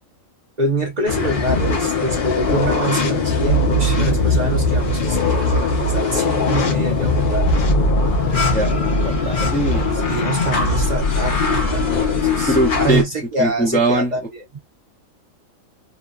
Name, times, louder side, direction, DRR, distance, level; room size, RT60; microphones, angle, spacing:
voice 1, 0.6-7.6 9.9-14.6, right 1 dB, 40° right, 0.7 m, -25 dB
sound 1, 1.1-13.0, left 2 dB, 45° left, 0.8 m, -19 dB
voice 2, 9.0-9.8 12.5-13.0 13.4-14.1, right 2 dB, 10° left, 0.4 m, -20 dB
2.8 x 2.1 x 2.3 m
omnidirectional pair, 1.4 m